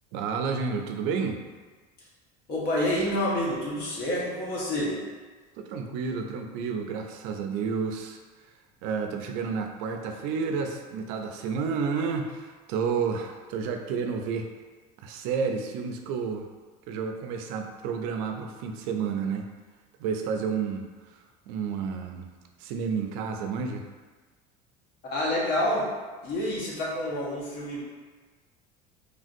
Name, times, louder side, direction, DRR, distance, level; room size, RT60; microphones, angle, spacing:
voice 1, 0.1-1.4 5.6-8.2 8.8-14.5 15.0-16.5 16.9-19.5 20.0-22.3 22.6-23.9, right 5 dB, 75° right, 4 dB, 0.4 m, -30 dB
voice 2, 2.5-5.0 25.0-25.9 26.2-27.8, left 1 dB, 55° left, -4 dB, 1.0 m, -28 dB
3.3 x 2.5 x 2.5 m, 1.4 s
supercardioid pair, 120°, 19 cm